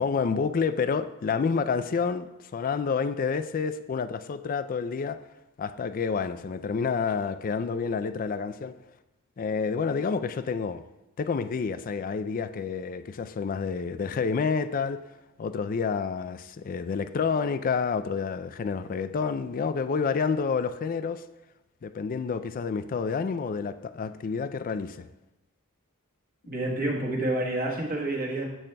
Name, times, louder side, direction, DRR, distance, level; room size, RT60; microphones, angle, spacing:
voice 1, 0.0-5.2 5.6-8.8 9.4-10.8 11.2-15.0 15.4-21.2 21.8-25.1, left 5 dB, 40° left, 12 dB, 0.3 m, -29 dB
voice 2, 26.5-28.5, right 1 dB, 40° right, -1 dB, 1.3 m, -28 dB
10.5 x 7.7 x 2.2 m, 0.97 s
head